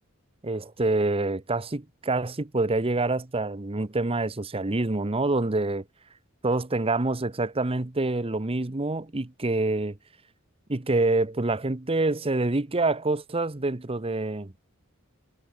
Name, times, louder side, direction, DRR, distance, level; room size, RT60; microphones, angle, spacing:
voice 1, 0.4-5.8 6.4-10.0 10.7-14.5, right 2 dB, 30° right, 1.0 m, -26 dB
head